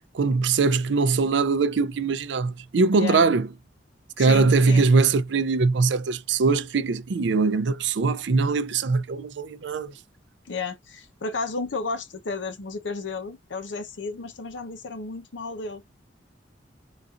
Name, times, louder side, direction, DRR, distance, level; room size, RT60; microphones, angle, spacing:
voice 1, 0.1-3.5 4.2-9.9, right 4 dB, 70° right, 0.4 m, -22 dB
voice 2, 4.2-4.8 10.5-15.8, left 3 dB, 75° left, 0.7 m, -33 dB
4.0 x 2.5 x 2.4 m
head